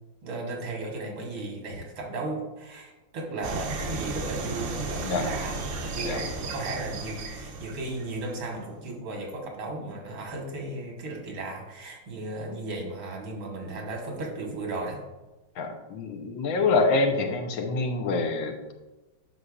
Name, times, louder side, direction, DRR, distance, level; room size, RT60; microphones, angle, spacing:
voice 1, 0.2-15.0, right 2 dB, 85° right, 0 dB, 2.3 m, -35 dB
sound 1, 3.4-8.5, right 3 dB, 60° right, 0.8 m, -34 dB
voice 2, 15.6-18.7, left 3 dB, 80° left, 4 dB, 1.6 m, -26 dB
9.8 x 6.3 x 2.4 m, 1.1 s
omnidirectional pair, 2.1 m